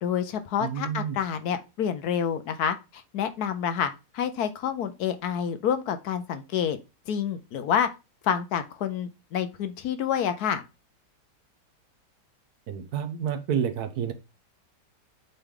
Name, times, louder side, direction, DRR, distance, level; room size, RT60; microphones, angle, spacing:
voice 1, 0.0-6.8 7.1-7.9 8.2-10.6, left 8 dB, 70° left, 1.1 m, -28 dB
voice 2, 0.6-1.2 12.7-14.1, right 8 dB, 65° right, 1.2 m, -29 dB
8.0 x 3.3 x 3.7 m
omnidirectional pair, 1.9 m